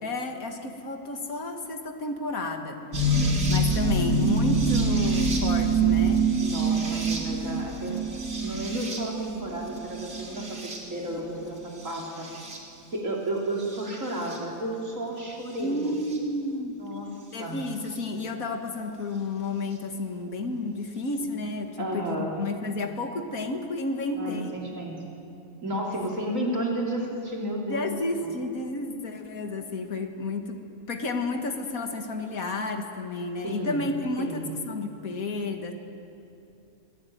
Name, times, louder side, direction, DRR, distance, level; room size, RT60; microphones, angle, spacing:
voice 1, 0.0-2.8 3.5-6.3 15.6-16.8 17.3-24.6 27.6-30.6 30.9-35.7, left 2 dB, 75° left, 4 dB, 2.3 m, -31 dB
sound 1, 2.9-11.1 11.8-12.6 13.7-14.4 16.1-16.2 17.9-18.0, right 3 dB, 80° right, 3.6 m, -26 dB
voice 2, 6.4-8.0 8.4-12.3 12.9-15.9 16.8-17.1 17.4-17.6 21.8-22.3 24.1-25.0 25.6-28.0 28.2-28.3 33.4-33.9 34.2-34.5, right 1 dB, 60° right, -2 dB, 3.6 m, -32 dB
26.0 x 18.5 x 9.3 m, 2.6 s
omnidirectional pair, 1.5 m